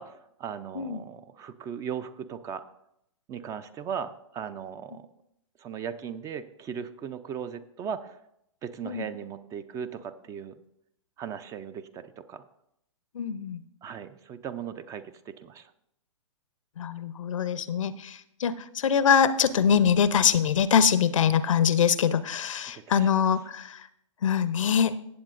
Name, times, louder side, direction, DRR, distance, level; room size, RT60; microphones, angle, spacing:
voice 1, 0.0-2.7 3.3-5.1 5.6-8.2 8.6-10.6 11.2-12.4 13.8-15.7 22.6-23.1, right 7 dB, 20° right, 13 dB, 0.4 m, -38 dB
voice 2, 13.2-13.6 16.8-23.7 24.2-24.9, left 7 dB, 70° left, 14 dB, 0.7 m, -23 dB
16.5 x 7.4 x 2.5 m, 0.78 s
hypercardioid pair, 125°, 17 cm